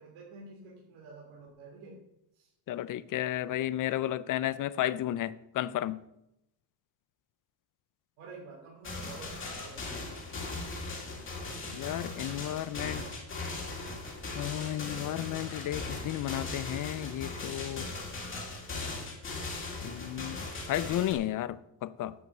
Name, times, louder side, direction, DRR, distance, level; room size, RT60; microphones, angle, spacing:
voice 1, 0.0-2.0 2.3-2.5 8.2-10.0, right 3 dB, 75° right, -3 dB, 2.8 m, -49 dB
voice 2, 2.7-6.0 11.7-13.0 14.4-17.9 19.8-22.1, left 13 dB, 45° left, 17 dB, 0.4 m, -33 dB
sound 1, 8.8-21.1, left 3 dB, 25° left, 2.2 m, -39 dB
9.4 x 5.6 x 7.7 m, 0.82 s
cardioid pair, 175°, 48 cm